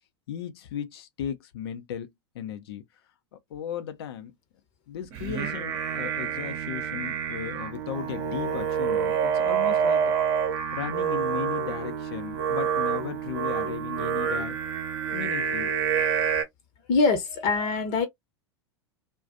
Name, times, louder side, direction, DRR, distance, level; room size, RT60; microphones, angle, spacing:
voice 1, 0.3-2.8 3.5-4.3 4.9-10.0 10.7-14.6 15.1-15.7, left 9 dB, 60° left, 0.6 m, -36 dB
Singing, 5.1-16.4, right 7 dB, 50° right, 0.8 m, -27 dB
voice 2, 16.9-18.1, left 4 dB, 45° left, 0.9 m, -23 dB
2.4 x 2.2 x 2.4 m
figure-of-eight pair, 90°, 15 cm